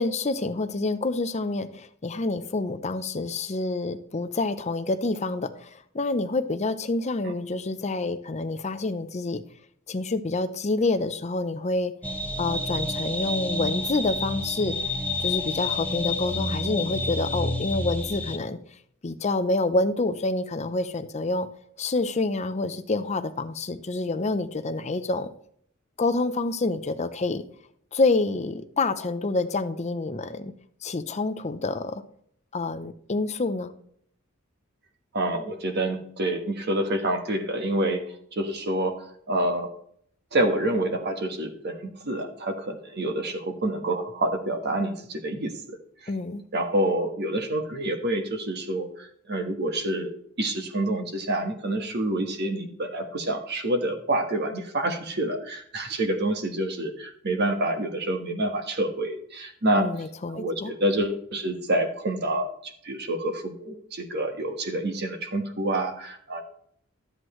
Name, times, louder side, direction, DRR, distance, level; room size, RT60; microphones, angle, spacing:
voice 1, 0.0-9.4 9.9-11.9 12.4-14.7 15.2-18.6 19.0-21.5 21.8-25.3 26.0-27.4 27.9-30.5 30.8-32.0 32.5-33.7 46.1-46.4 59.8-60.7, left 3 dB, 35° left, 0.6 m, -27 dB
sound 1, 12.0-18.4, left 2 dB, 5° left, 1.0 m, -29 dB
voice 2, 35.1-39.7 40.3-46.1 46.5-50.1 50.4-59.9 60.3-66.4, right 1 dB, 55° right, 1.4 m, -28 dB
12.5 x 7.8 x 3.2 m
head